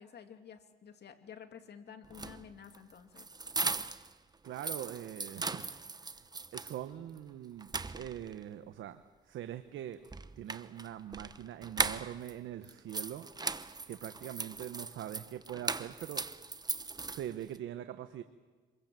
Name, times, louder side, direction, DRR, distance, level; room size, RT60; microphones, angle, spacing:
voice 1, 0.0-3.3, left 7 dB, 55° left, 7 dB, 2.5 m, -51 dB
sound 1, 2.0-4.1 4.5-6.8 7.2-7.3 7.6-8.4 10.0-12.3 12.6-17.6, right 3 dB, 20° right, 1.0 m, -38 dB
voice 2, 4.4-5.7 6.0-6.1 6.5-10.0 10.4-13.3 13.9-16.2 17.0-18.2, right 11 dB, 75° right, 9 dB, 1.1 m, -43 dB
26.0 x 22.0 x 7.7 m, 1.4 s
cardioid pair, 90°, 20 cm